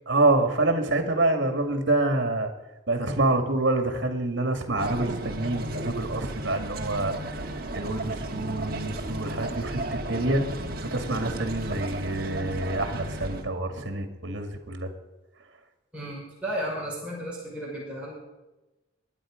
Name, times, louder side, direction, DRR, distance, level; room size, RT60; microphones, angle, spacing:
voice 1, 0.1-2.5 2.9-7.1 7.7-10.4 10.9-14.9, right 2 dB, 65° right, 6 dB, 2.2 m, -26 dB
sound 1, 4.8-13.4, right 1 dB, 50° right, 1.5 m, -34 dB
voice 2, 15.9-18.1, right 1 dB, 5° right, -7 dB, 5.6 m, -34 dB
22.5 x 10.5 x 5.1 m, 1.1 s
head